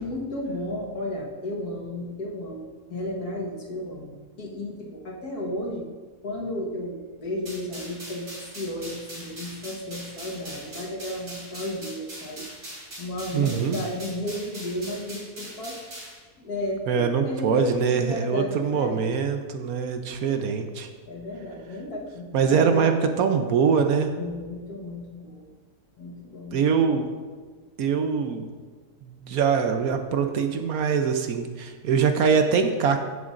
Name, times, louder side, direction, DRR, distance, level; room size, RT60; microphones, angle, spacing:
voice 1, 0.0-5.9 6.2-12.5 13.0-15.8 16.4-19.1 21.1-22.9 24.1-25.5 26.0-26.6, left 1 dB, 70° left, -2 dB, 1.9 m, -33 dB
sound 1, 7.5-16.2, right 1 dB, 55° right, 3.4 m, -41 dB
voice 2, 13.3-13.8 16.9-20.9 22.3-24.1 26.5-27.1 27.8-28.5 29.0-33.0, right 6 dB, 70° right, 6 dB, 1.1 m, -23 dB
15.0 x 7.0 x 2.5 m, 1.5 s
omnidirectional pair, 1.7 m